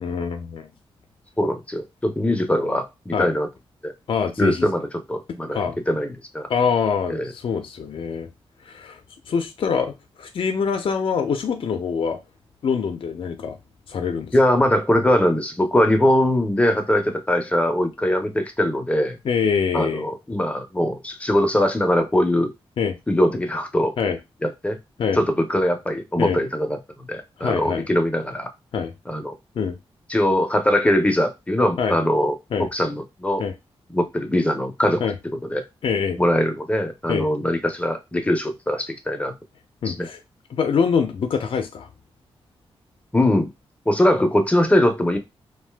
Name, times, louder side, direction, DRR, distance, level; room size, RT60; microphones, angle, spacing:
voice 1, 0.0-0.7 3.1-3.3 4.1-4.7 5.5-5.8 6.5-8.3 8.7-9.0 9.3-12.2 12.6-13.6 13.9-14.3 19.2-20.1 22.8-23.0 24.0-24.2 25.0-25.2 26.2-26.4 27.4-27.9 28.7-28.9 29.5-29.8 31.8-32.0 32.5-32.7 33.4-33.5 35.0-35.1 35.8-36.2 37.1-37.3 39.8-40.2 40.5-41.9, left 6 dB, 60° left, 0.5 m, -24 dB
voice 2, 1.4-3.5 3.8-3.9 4.4-6.5 7.1-7.3 14.3-19.2 19.7-22.5 23.1-23.9 24.4-24.8 25.1-28.5 29.1-29.3 30.1-32.3 32.7-33.4 33.9-35.0 35.4-35.6 36.2-39.3 39.9-40.1 43.1-43.5 43.9-45.2, left 1 dB, 15° left, 0.5 m, -21 dB
2.6 x 2.2 x 3.3 m
wide cardioid pair, 125°, 10 cm